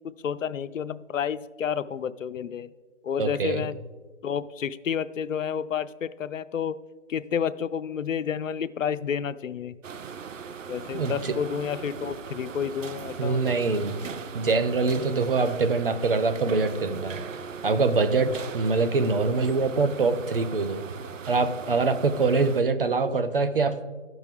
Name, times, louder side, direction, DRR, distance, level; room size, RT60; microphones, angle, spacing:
voice 1, 0.2-2.7 3.0-3.8 4.2-6.8 7.1-9.8 10.7-13.6, left 7 dB, 85° left, 15 dB, 0.5 m, -30 dB
voice 2, 3.2-3.7 10.9-11.3 13.2-14.0 14.3-17.2 17.6-20.8 21.3-23.9, right 4 dB, 50° right, 11 dB, 0.5 m, -24 dB
sound 1, 9.8-22.6, right 6 dB, 85° right, 0.6 m, -39 dB
13.5 x 6.1 x 3.5 m, 1.4 s
hypercardioid pair, 160°, 38 cm